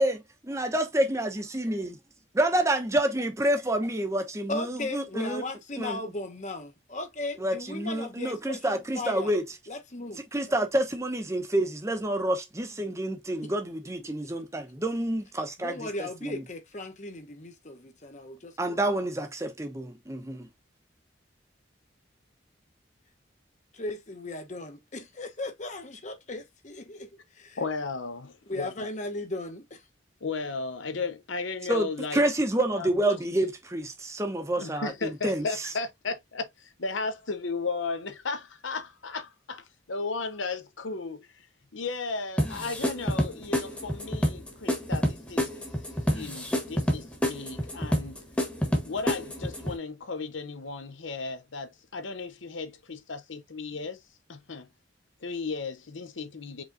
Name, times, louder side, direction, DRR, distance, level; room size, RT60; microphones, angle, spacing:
voice 1, 0.5-1.9 2.4-5.4 5.8-6.0 7.4-9.4 10.3-16.4 18.6-20.5 31.7-35.4, right 1 dB, 15° right, 0.8 m, -28 dB
voice 2, 4.5-9.3 9.7-10.2 12.8-12.9 13.4-13.5 14.0-14.2 15.6-18.9 23.7-27.6 28.5-29.8, left 2 dB, 40° left, 0.9 m, -37 dB
voice 3, 27.6-28.9 30.2-32.2 32.8-33.2 34.6-41.5 41.7-45.5 46.1-48.2 48.8-54.0 54.3-54.7 55.2-56.6, left 4 dB, 85° left, 0.9 m, -35 dB
sound 1, 42.4-49.8, equal, 5° left, 1.1 m, -28 dB
5.0 x 3.7 x 2.6 m
head